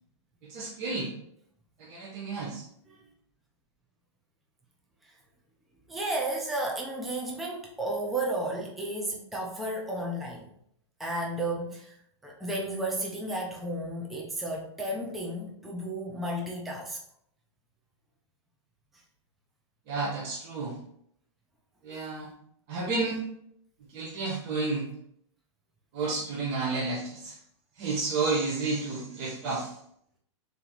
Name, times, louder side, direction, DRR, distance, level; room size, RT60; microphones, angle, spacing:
voice 1, 0.4-1.1 1.8-2.7 19.9-20.8 21.8-22.3 22.7-23.2 23.9-24.9 25.9-27.4 27.8-29.7, right 3 dB, 30° right, -4 dB, 0.8 m, -31 dB
voice 2, 5.9-10.5 11.0-11.9 12.2-17.0, right 1 dB, ahead, -2 dB, 0.3 m, -33 dB
3.9 x 2.9 x 3.8 m, 0.69 s
hypercardioid pair, 165°, 15 cm